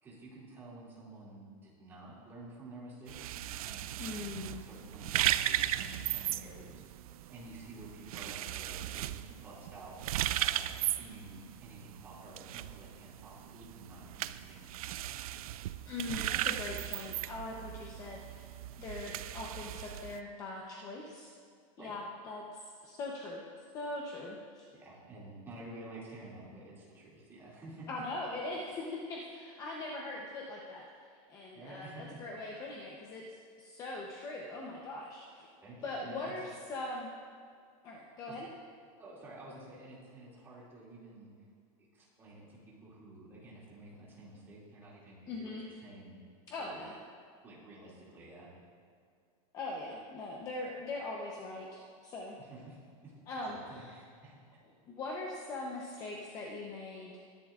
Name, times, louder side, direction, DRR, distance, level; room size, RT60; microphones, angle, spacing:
voice 1, 0.0-4.0 4.5-6.8 7.3-9.2 9.4-10.0 10.4-15.2 21.8-21.9 24.7-27.9 31.5-32.2 35.6-36.3 38.3-38.4 39.0-41.3 41.8-46.2 46.6-46.8 47.4-48.5 52.4-52.8 53.0-53.1 53.4-54.4, right 2 dB, 15° right, -7 dB, 2.5 m, -51 dB
sound 1, 3.1-20.2, right 13 dB, 80° right, 0.4 m, -37 dB
voice 2, 4.0-4.6 15.8-21.3 21.8-23.4 23.7-24.6 27.9-30.9 31.3-35.5 35.8-37.1 37.8-38.5 45.3-45.6 46.5-46.9 49.5-52.4 53.3-53.6 54.9-57.2, left 2 dB, 20° left, -2 dB, 0.8 m, -41 dB
21.0 x 10.5 x 2.5 m, 2.1 s
supercardioid pair, 180°, 18 cm